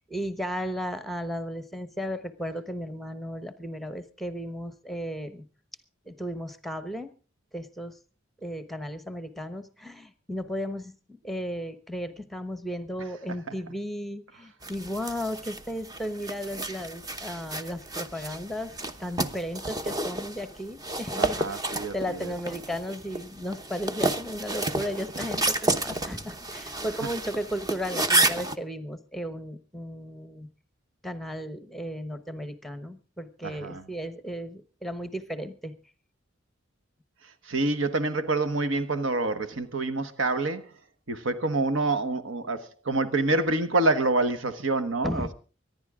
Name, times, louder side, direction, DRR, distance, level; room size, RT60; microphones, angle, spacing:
voice 1, 0.1-5.5 6.0-7.1 7.5-8.0 8.4-10.9 11.2-18.7 19.0-30.5 31.0-35.8 45.0-45.3, equal, ahead, 1.1 m, -35 dB
sound 1, 14.6-28.6, right 2 dB, 20° right, 0.8 m, -31 dB
voice 2, 21.2-22.3 33.4-33.8 37.4-40.7 41.1-45.3, right 2 dB, 75° right, 1.3 m, -27 dB
24.5 x 11.0 x 3.7 m
head